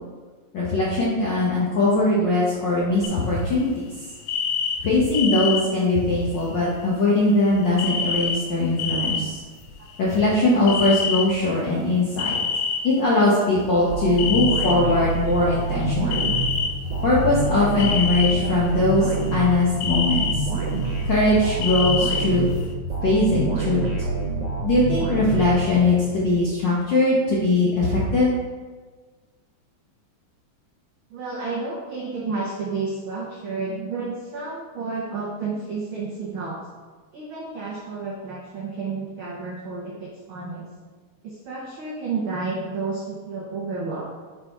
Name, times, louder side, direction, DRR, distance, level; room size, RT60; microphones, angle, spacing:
voice 1, 0.5-3.8 4.8-9.4 10.0-12.3 12.8-16.3 17.0-20.2 21.0-22.5 23.0-23.8 24.6-28.3, left 2 dB, 65° left, -7 dB, 1.1 m, -21 dB
sound 1, 3.0-3.6 3.9-4.0 4.2-5.6 6.4-6.5 7.7-8.4 8.7-9.2 9.6-10.4 10.7-11.3 12.2-13.2 14.2-14.7 15.4-15.5 16.1-16.7 17.7-18.4 18.7-19.4 19.8-20.3 20.7-22.2 22.6-22.7, left 6 dB, 85° left, 2.2 m, -26 dB
sound 2, 13.9-26.2, right 3 dB, 60° right, 1.8 m, -27 dB
voice 2, 31.1-36.6 37.1-40.7 41.2-44.1, right 4 dB, 90° right, -4 dB, 1.1 m, -31 dB
5.6 x 4.7 x 4.6 m, 1.4 s
omnidirectional pair, 3.5 m